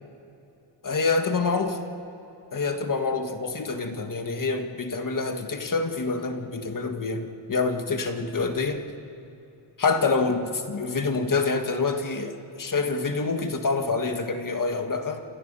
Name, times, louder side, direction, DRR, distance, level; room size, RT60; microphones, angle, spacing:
voice 1, 0.8-1.8 2.5-8.8 9.8-15.2, left 4 dB, 40° left, 6 dB, 1.7 m, -26 dB
28.0 x 28.0 x 5.6 m, 2.9 s
wide cardioid pair, 170°, 48 cm